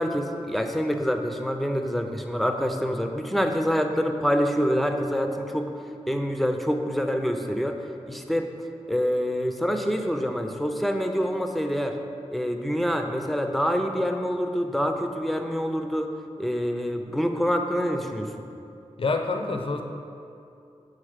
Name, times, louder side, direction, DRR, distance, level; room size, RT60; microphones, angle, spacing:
voice 1, 0.0-5.7 6.1-7.8 8.1-8.5 8.9-12.0 12.3-16.1 16.4-18.4, equal, ahead, 4 dB, 0.6 m, -26 dB
voice 2, 19.0-19.8, left 3 dB, 50° left, 5 dB, 0.5 m, -26 dB
7.5 x 4.0 x 5.0 m, 2.6 s
wide cardioid pair, 60°, 12 cm